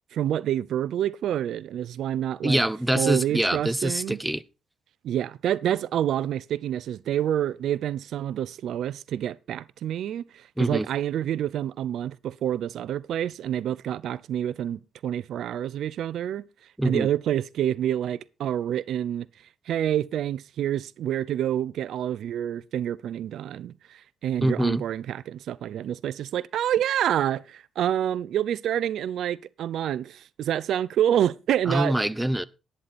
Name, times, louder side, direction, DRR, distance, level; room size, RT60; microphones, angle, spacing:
voice 1, 0.1-2.6 2.9-4.2 5.0-16.4 16.8-19.3 19.7-31.9, right 10 dB, 75° right, 0.7 m, -28 dB
voice 2, 2.4-4.4 10.6-10.9 16.8-17.1 24.4-24.8 31.7-32.5, right 1 dB, 5° right, 0.7 m, -24 dB
11.0 x 9.9 x 4.3 m
cardioid pair, 90°, 0 cm